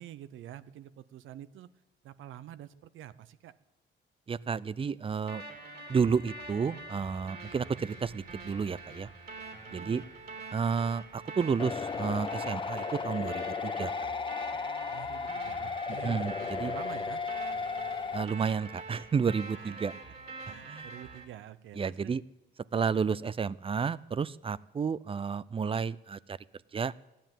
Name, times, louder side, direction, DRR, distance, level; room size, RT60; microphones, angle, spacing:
voice 1, 0.0-1.7 2.0-3.5 9.7-10.1 14.9-17.2 19.6-19.7 20.5-22.1, right 12 dB, 80° right, 16 dB, 0.8 m, -47 dB
voice 2, 4.3-5.4 5.9-9.1 9.7-10.0 10.5-14.1 16.0-16.7 18.1-19.9 20.7-20.9 21.7-22.2 22.7-26.4 26.7-26.9, right 6 dB, 25° right, 21 dB, 0.5 m, -31 dB
sound 1, 5.3-21.2, right 3 dB, 50° right, 3.2 m, -45 dB
sound 2, 11.6-18.2, left 5 dB, 25° left, 0.5 m, -35 dB
15.0 x 10.5 x 9.1 m, 0.99 s
cardioid pair, 90°, 20 cm